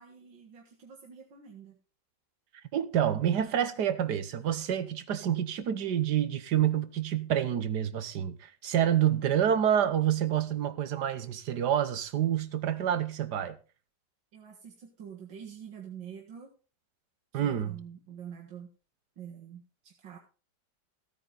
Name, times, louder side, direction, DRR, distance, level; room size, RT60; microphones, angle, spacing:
voice 1, 0.0-1.8 14.3-16.5 17.3-18.7 19.2-20.2, right 8 dB, 80° right, 2.4 m, -46 dB
voice 2, 2.7-13.6 17.3-17.8, right 10 dB, 65° right, 1.6 m, -28 dB
15.5 x 9.0 x 4.0 m
omnidirectional pair, 2.0 m